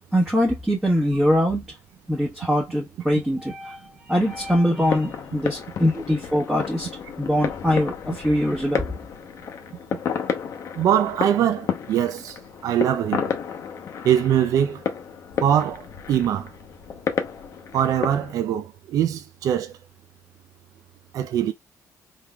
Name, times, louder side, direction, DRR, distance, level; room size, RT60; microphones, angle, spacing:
voice 1, 0.1-1.8 2.1-3.8 4.1-6.9 7.2-8.8, equal, 5° right, 1.1 m, -22 dB
sound 1, 4.1-18.3, left 7 dB, 55° left, 0.8 m, -32 dB
voice 2, 10.8-13.3 14.0-14.8 15.4-16.5 17.7-19.7 21.1-21.5, right 10 dB, 70° right, 0.5 m, -22 dB
3.6 x 3.2 x 2.2 m
cardioid pair, 135°, 6 cm